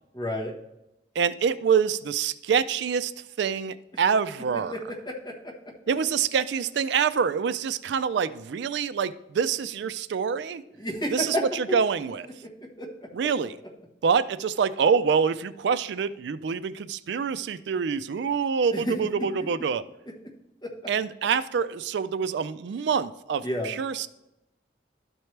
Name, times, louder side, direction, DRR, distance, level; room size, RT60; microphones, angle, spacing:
voice 1, 0.1-0.6 4.7-5.5 10.7-11.8 12.4-12.5 12.8-13.1 18.7-19.3 20.6-20.8 23.4-23.7, equal, 25° left, -1 dB, 1.3 m, -31 dB
voice 2, 1.2-3.1 3.4-4.7 5.9-10.6 11.1-12.3 13.1-13.6 14.0-19.8 20.9-24.1, right 6 dB, 65° right, 15 dB, 0.3 m, -26 dB
12.5 x 4.5 x 3.2 m, 0.90 s
head